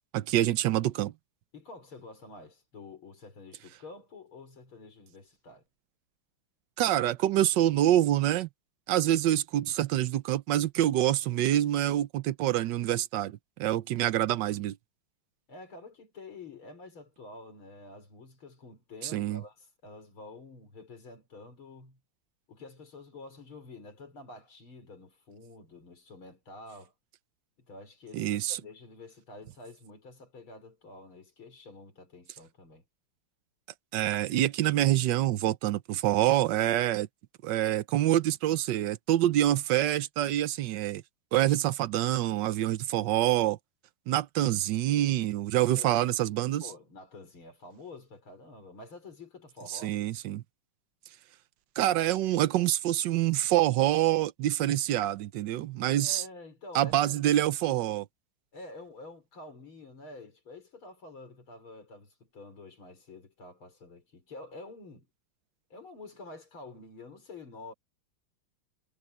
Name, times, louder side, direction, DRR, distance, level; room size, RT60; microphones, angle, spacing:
voice 1, 0.1-1.1 6.8-8.5 8.9-14.8 19.0-19.4 28.1-28.6 33.9-37.1 37.4-41.0 41.3-43.6 44.1-46.7 49.7-50.4 51.8-56.2 56.7-58.1, right 13 dB, 70° right, 1.2 m, -26 dB
voice 2, 1.5-5.6 15.5-22.0 22.5-26.9 27.6-32.8 45.5-50.0 55.9-57.2 58.5-65.1 65.7-67.7, left 2 dB, 70° left, 6.1 m, -48 dB
omnidirectional pair, 2.4 m